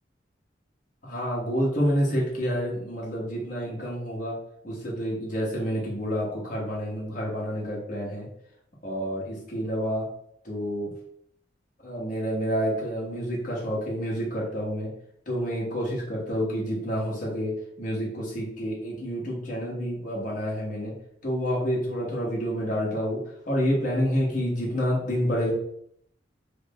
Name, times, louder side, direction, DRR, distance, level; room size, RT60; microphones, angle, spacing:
voice 1, 1.0-4.4 4.6-8.3 8.8-10.1 10.4-10.9 11.8-14.9 15.3-17.5 17.8-20.9 21.2-23.2 23.4-25.5, equal, 45° left, -5 dB, 1.3 m, -28 dB
3.6 x 2.1 x 3.5 m, 0.70 s
head